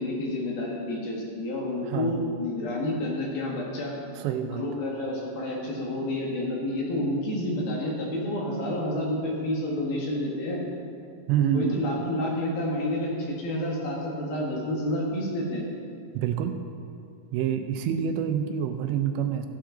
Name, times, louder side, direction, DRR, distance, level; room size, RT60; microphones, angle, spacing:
voice 1, 0.0-3.9 4.4-10.6 11.5-15.6, left 1 dB, 65° left, -2 dB, 3.2 m, -29 dB
voice 2, 1.8-2.2 4.2-4.6 11.3-11.8 16.1-16.6 17.3-19.5, right 9 dB, 80° right, 7 dB, 2.8 m, -27 dB
14.5 x 10.0 x 3.8 m, 2.4 s
omnidirectional pair, 5.2 m